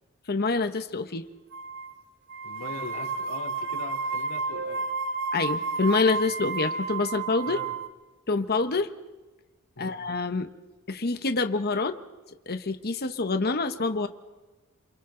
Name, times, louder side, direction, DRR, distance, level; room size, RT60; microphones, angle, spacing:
voice 1, 0.3-1.3 5.3-7.6 8.3-8.9 9.8-10.5 10.9-12.0 12.5-14.1, left 3 dB, 45° left, 8 dB, 1.1 m, -26 dB
sound 1, 1.5-1.9 2.3-7.9, right 4 dB, 60° right, 1.6 m, -31 dB
voice 2, 2.4-4.9 7.4-7.7 9.7-10.0, left 2 dB, 70° left, 1 dB, 3.4 m, -41 dB
28.5 x 27.5 x 3.9 m, 1.2 s
head